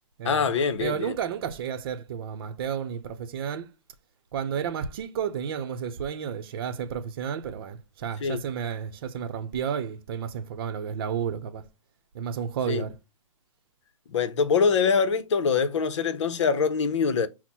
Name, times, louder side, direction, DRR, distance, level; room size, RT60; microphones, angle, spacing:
voice 1, 0.2-1.2 8.2-8.4 12.7-12.8 14.1-17.3, left 5 dB, 60° left, 0.8 m, -24 dB
voice 2, 0.8-3.7 4.3-11.6 12.1-12.9, right 7 dB, 45° right, 0.7 m, -32 dB
5.8 x 2.1 x 4.3 m
hypercardioid pair, 145°, 17 cm